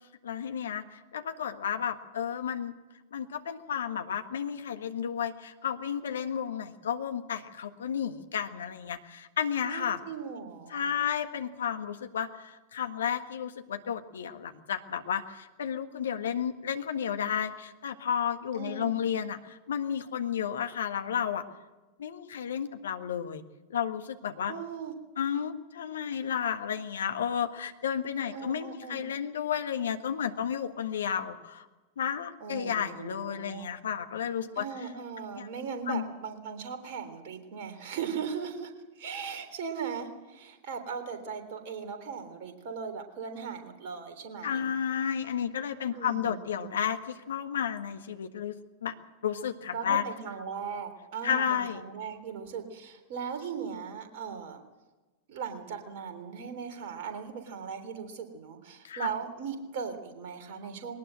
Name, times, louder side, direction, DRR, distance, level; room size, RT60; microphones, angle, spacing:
voice 1, 0.2-2.7 3.1-10.0 10.7-21.4 22.0-23.4 23.7-24.5 25.2-31.6 32.0-34.6 35.4-35.5 35.8-36.1 44.4-48.5 48.8-48.9 49.2-50.0 51.2-51.8 58.8-59.1, left 8 dB, 65° left, 8 dB, 1.6 m, -32 dB
voice 2, 9.7-10.9 18.5-19.0 24.5-24.9 28.3-29.0 32.4-33.7 34.6-38.7 39.0-44.7 45.9-46.7 49.7-54.6 55.3-60.9, right 6 dB, 50° right, 6 dB, 3.5 m, -38 dB
21.0 x 19.0 x 7.7 m, 1.2 s
figure-of-eight pair, 90°, 0 cm